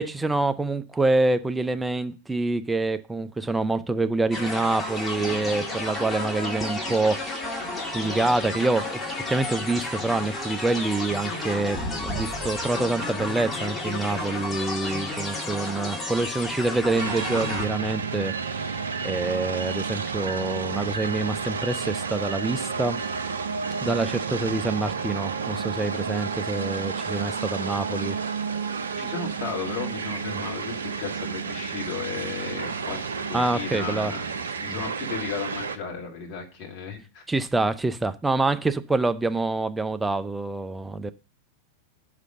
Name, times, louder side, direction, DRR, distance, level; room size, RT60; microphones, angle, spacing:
voice 1, 0.0-23.0 23.8-28.2 30.3-30.4 33.3-34.1 34.7-34.8 37.3-41.1, right 2 dB, 10° right, 0.5 m, -26 dB
sound 1, 4.3-17.7, left 2 dB, 10° left, 2.2 m, -31 dB
voice 2, 5.2-5.6 29.0-33.0 33.3-37.2, left 6 dB, 40° left, 2.0 m, -35 dB
sound 2, 17.0-35.8, right 5 dB, 70° right, 0.6 m, -31 dB
6.3 x 5.0 x 6.7 m
figure-of-eight pair, 90°, 0 cm